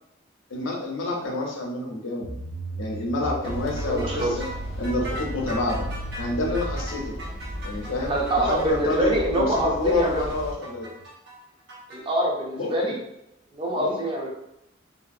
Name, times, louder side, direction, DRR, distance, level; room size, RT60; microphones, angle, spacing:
voice 1, 0.5-2.3 2.8-4.5 4.8-5.9 6.2-7.1 7.6-10.9 12.5-12.9 13.7-14.0, left 2 dB, 80° left, 0 dB, 0.6 m, -28 dB
sound 1, 2.2-11.1, right 3 dB, 80° right, 0.4 m, -40 dB
sound 2, 3.4-10.5, equal, 35° left, 0.5 m, -35 dB
sound 3, 3.4-12.0, right 1 dB, 55° right, 0.7 m, -40 dB
voice 2, 3.9-4.4 8.0-10.2 11.9-13.0 13.5-14.3, right 1 dB, 25° right, -1 dB, 0.5 m, -25 dB
2.6 x 2.4 x 2.5 m, 0.81 s
head